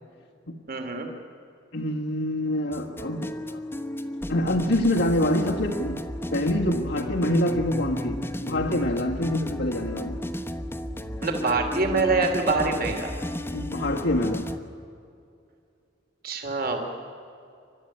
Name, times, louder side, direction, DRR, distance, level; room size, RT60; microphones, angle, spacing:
voice 1, 0.7-1.1 11.2-13.1 16.2-16.8, right 3 dB, 50° right, 4 dB, 2.6 m, -25 dB
voice 2, 1.7-3.6 4.3-6.0 6.3-10.2 13.5-14.5, left 1 dB, 90° left, -4 dB, 1.9 m, -26 dB
sound 1, 2.7-14.6, left 1 dB, 10° left, 1.0 m, -33 dB
29.0 x 12.5 x 9.9 m, 2.5 s
head